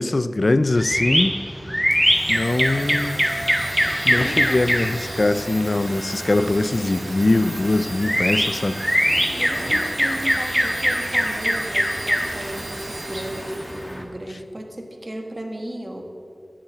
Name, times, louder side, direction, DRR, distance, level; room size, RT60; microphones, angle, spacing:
voice 1, 0.0-1.3 2.3-3.3 4.0-8.8, left 2 dB, 55° left, 0.5 m, -22 dB
sound 1, 0.8-14.0, equal, ahead, 1.5 m, -24 dB
Domestic sounds home sounds, 1.9-14.0, right 1 dB, 85° right, 2.4 m, -36 dB
voice 2, 4.1-4.6 9.3-16.0, right 1 dB, 35° right, 1.8 m, -34 dB
12.0 x 8.8 x 7.8 m
wide cardioid pair, 65°, 0 cm